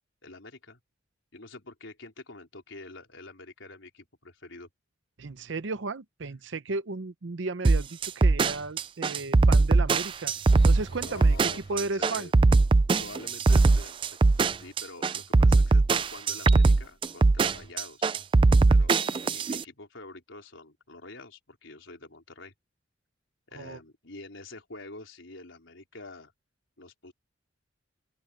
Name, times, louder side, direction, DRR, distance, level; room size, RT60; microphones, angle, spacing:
voice 1, 0.2-0.8 1.3-4.7 10.9-12.3 13.0-18.2 18.7-22.5 23.5-26.3 26.8-27.1, left 2 dB, 80° left, 4.1 m, -46 dB
voice 2, 5.2-10.3 10.6-12.3 23.6-23.8, right 3 dB, 70° right, 0.7 m, -34 dB
sound 1, 7.6-19.6, right 3 dB, 25° right, 0.3 m, -21 dB
sound 2, 9.8-12.5, left 3 dB, 55° left, 7.3 m, -57 dB
open air
head